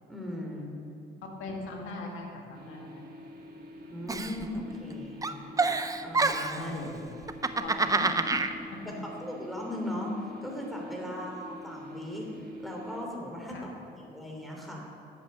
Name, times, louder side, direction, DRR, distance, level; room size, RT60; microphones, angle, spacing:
voice 1, 0.1-0.7 3.9-5.2 6.0-6.7 9.0-10.1 10.4-12.3 12.6-13.7 14.1-14.9, left 1 dB, ahead, -2 dB, 3.1 m, -38 dB
voice 2, 1.2-3.1 6.5-7.0 7.6-8.8 11.1-11.2 13.5-13.7, left 2 dB, 90° left, 0 dB, 2.0 m, -40 dB
sound 1, 2.5-13.0, equal, 50° right, 1.8 m, -46 dB
Giggle, 4.1-4.9 5.2-6.7 7.2-8.5, right 3 dB, 15° right, 0.5 m, -27 dB
10.5 x 8.1 x 6.6 m, 2.7 s
cardioid pair, 90°, 20 cm